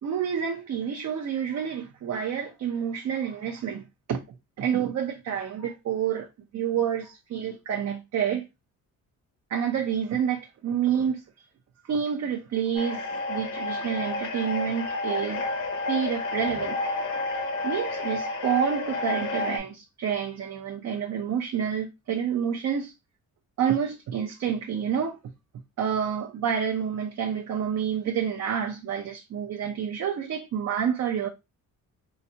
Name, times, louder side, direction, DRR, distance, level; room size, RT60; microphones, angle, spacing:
voice 1, 0.0-4.2 4.6-6.3 6.5-8.4 9.5-11.2 11.8-15.4 15.9-16.8 17.6-22.9 23.6-25.2 25.8-31.3, right 8 dB, 50° right, 0.6 m, -28 dB
sound 1, 12.7-19.6, left 2 dB, 60° left, 1.0 m, -30 dB
4.0 x 2.1 x 2.7 m
cardioid pair, 100°, 35 cm